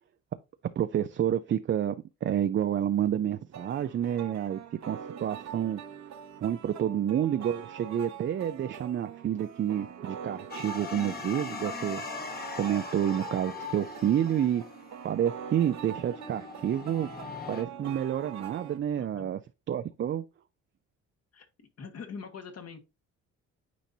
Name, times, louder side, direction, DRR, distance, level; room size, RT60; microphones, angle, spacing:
voice 1, 0.8-4.6 4.9-5.8 6.4-12.0 12.5-14.6 15.0-17.1 17.5-19.4 19.7-20.2, right 10 dB, 40° right, 0.4 m, -29 dB
sound 1, 3.5-18.8, right 8 dB, 65° right, 1.0 m, -44 dB
sound 2, 10.5-17.6, left 5 dB, 30° left, 1.2 m, -41 dB
voice 2, 19.0-19.3 21.3-22.8, left 5 dB, 55° left, 1.6 m, -44 dB
9.2 x 4.0 x 2.8 m
cardioid pair, 90°, 30 cm